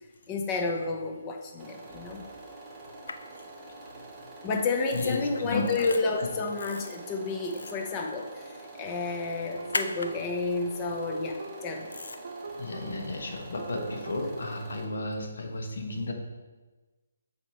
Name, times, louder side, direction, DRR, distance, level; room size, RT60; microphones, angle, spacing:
voice 1, 0.0-2.3 4.4-11.9, left 3 dB, 20° left, 3 dB, 0.7 m, -31 dB
sound 1, 1.6-14.9, right 2 dB, 20° right, 0.9 m, -46 dB
sound 2, 3.1-3.2 4.9-5.2 5.6-6.0 6.6-7.0 7.4-7.8 9.7-10.1 11.9-12.2, left 3 dB, 90° left, 0.5 m, -35 dB
voice 2, 4.9-5.9 6.2-6.3 12.6-16.1, left 2 dB, 70° left, 2 dB, 1.1 m, -33 dB
sound 3, 9.6-14.4, right 3 dB, 55° right, 0.4 m, -43 dB
7.8 x 2.9 x 4.3 m, 1.2 s
hypercardioid pair, 160°, 0 cm